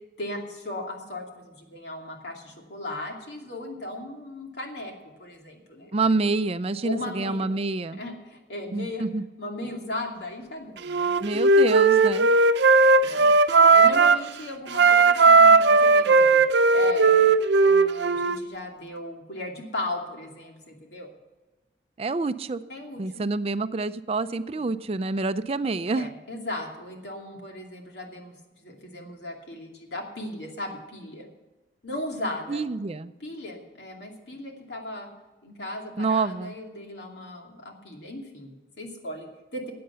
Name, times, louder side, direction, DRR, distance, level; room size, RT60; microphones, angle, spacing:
voice 1, 0.2-5.9 6.8-7.5 7.9-9.0 9.4-11.4 12.6-13.3 13.7-16.4 16.7-17.3 17.6-21.1 22.7-23.3 24.6-24.7 25.9-31.3 31.8-32.6 33.2-35.1 35.4-39.7, left 1 dB, 80° left, 1 dB, 2.6 m, -37 dB
voice 2, 5.9-8.0 8.7-9.2 11.2-12.3 22.0-22.6 23.0-26.1 32.5-33.1 36.0-36.5, right 3 dB, 35° right, 13 dB, 0.4 m, -27 dB
Wind instrument woodwind instrument, 10.9-14.3 14.7-18.4, right 4 dB, 80° right, 0.6 m, -17 dB
14.0 x 8.6 x 6.8 m, 1.2 s
head